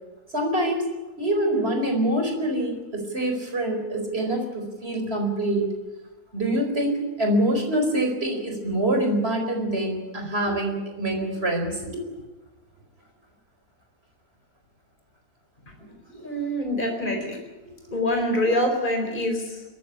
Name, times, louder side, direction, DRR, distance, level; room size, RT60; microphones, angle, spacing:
voice 1, 0.3-0.9 1.2-5.7 6.3-12.0 15.8-16.3 17.6-17.9, right 1 dB, 40° right, 4 dB, 4.8 m, -25 dB
voice 2, 16.2-17.4 17.9-19.6, left 1 dB, 30° left, 2 dB, 4.6 m, -25 dB
22.5 x 14.5 x 9.9 m, 1.2 s
omnidirectional pair, 1.6 m